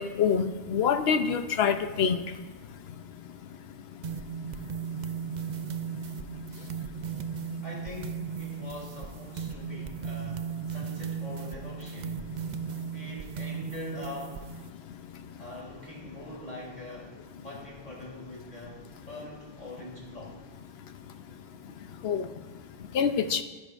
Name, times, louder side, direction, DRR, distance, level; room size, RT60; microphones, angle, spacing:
voice 1, 0.0-2.2 22.0-22.2 22.9-23.4, left 7 dB, 75° left, 9 dB, 1.0 m, -25 dB
sound 1, 4.0-14.7, right 7 dB, 50° right, 0.6 m, -36 dB
voice 2, 7.6-12.3 12.9-14.4 15.4-20.4, left 1 dB, 45° left, -4 dB, 3.5 m, -43 dB
23.5 x 10.0 x 2.6 m, 1.3 s
omnidirectional pair, 1.1 m